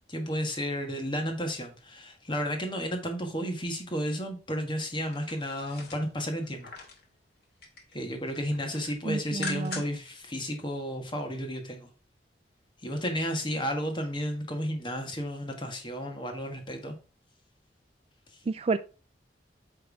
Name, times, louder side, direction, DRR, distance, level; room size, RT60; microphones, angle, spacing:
voice 1, 0.1-6.7 7.9-11.9 12.8-16.9, equal, 25° left, 1.5 m, -32 dB
sound 1, 5.1-7.1 7.4-7.9 8.3-10.1 10.5-10.6, left 4 dB, 60° left, 1.8 m, -42 dB
voice 2, 9.0-9.8 18.5-18.8, right 4 dB, 35° right, 0.3 m, -30 dB
8.4 x 3.6 x 4.7 m
head